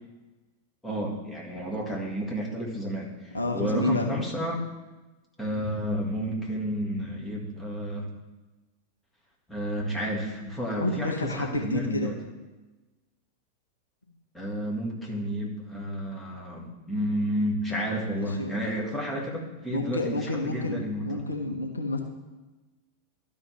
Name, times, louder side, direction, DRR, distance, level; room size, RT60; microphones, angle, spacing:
voice 1, 0.8-4.6 5.4-8.1 9.5-12.1 14.3-21.2, equal, 10° left, -2 dB, 2.0 m, -31 dB
voice 2, 3.3-4.1 10.8-12.1 15.1-15.2 18.2-18.5 19.7-22.0, left 2 dB, 80° left, 3 dB, 0.9 m, -29 dB
12.5 x 5.4 x 3.4 m, 1.2 s
figure-of-eight pair, 90°, 0 cm